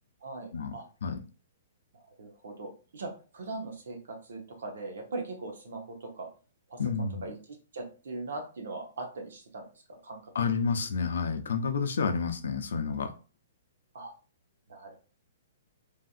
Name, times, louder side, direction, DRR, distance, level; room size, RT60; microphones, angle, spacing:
voice 1, 0.2-0.9 1.9-6.3 6.7-10.3 13.9-14.1 14.7-14.9, right 3 dB, 80° right, 3 dB, 1.0 m, -40 dB
voice 2, 6.8-7.2 10.3-13.1, left 5 dB, 80° left, 8 dB, 0.5 m, -29 dB
3.2 x 2.6 x 2.4 m, 0.35 s
hypercardioid pair, 170°, 0 cm